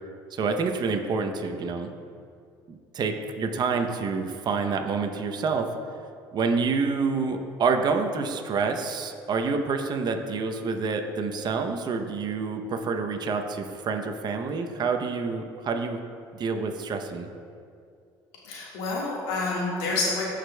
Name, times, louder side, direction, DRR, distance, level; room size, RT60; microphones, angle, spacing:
voice 1, 0.3-1.9 2.9-5.7 6.3-16.0 16.4-17.3, right 4 dB, 50° right, 5 dB, 0.7 m, -27 dB
voice 2, 18.4-20.2, left 3 dB, 85° left, -4 dB, 1.7 m, -28 dB
14.5 x 5.0 x 2.2 m, 2.3 s
supercardioid pair, 80°, 10 cm